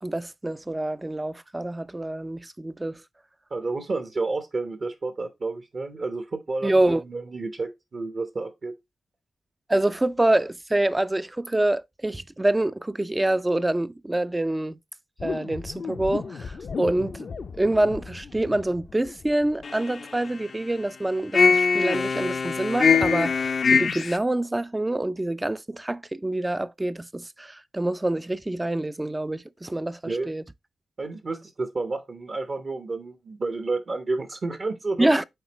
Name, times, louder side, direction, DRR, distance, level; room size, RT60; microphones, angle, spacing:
voice 1, 0.0-3.0 6.6-7.0 9.7-14.8 15.2-17.3 17.6-30.4 35.0-35.2, right 1 dB, 15° right, 0.4 m, -26 dB
voice 2, 3.5-8.7 30.1-30.3 31.0-35.1, right 3 dB, 50° right, 1.0 m, -30 dB
sound 1, 15.2-19.2 19.6-20.5 21.3-24.2, left 5 dB, 60° left, 0.5 m, -25 dB
7.9 x 4.3 x 3.0 m
cardioid pair, 70°, 0 cm